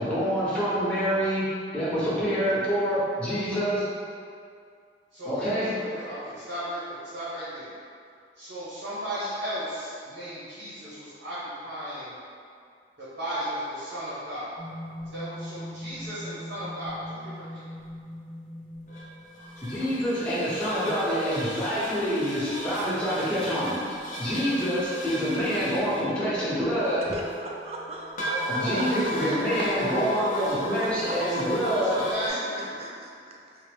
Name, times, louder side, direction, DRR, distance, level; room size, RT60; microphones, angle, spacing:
voice 1, 0.0-1.4 1.7-3.9 5.2-5.7 19.6-23.7 24.2-27.0 28.5-32.0, equal, 5° left, -11 dB, 0.9 m, -26 dB
voice 2, 5.1-7.7 8.4-11.4 11.6-12.1 13.2-14.5 15.1-17.6 28.3-30.5 31.0-31.1 31.7-32.7, equal, 85° right, -12 dB, 1.1 m, -35 dB
sound 1, 14.6-32.3, equal, 45° left, 0.6 m, -37 dB
voice 3, 27.1-28.3 30.8-31.0 32.3-33.6, right 1 dB, 35° right, -2 dB, 0.4 m, -39 dB
3.8 x 2.0 x 3.4 m, 2.3 s
head